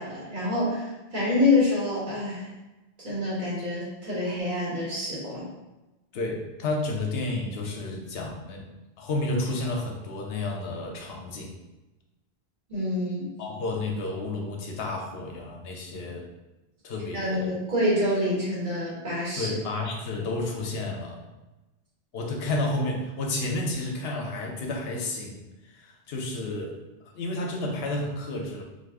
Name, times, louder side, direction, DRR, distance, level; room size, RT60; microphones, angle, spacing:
voice 1, 0.0-2.5 3.0-5.4 12.7-13.3 17.1-19.5, left 2 dB, 50° right, -7 dB, 1.2 m, -27 dB
voice 2, 6.1-8.7 9.0-11.6 13.4-16.3 16.8-17.5 19.4-21.2 22.1-26.8 27.0-28.6, left 2 dB, 75° left, 1 dB, 0.8 m, -31 dB
2.6 x 2.4 x 3.4 m, 1.1 s
omnidirectional pair, 1.1 m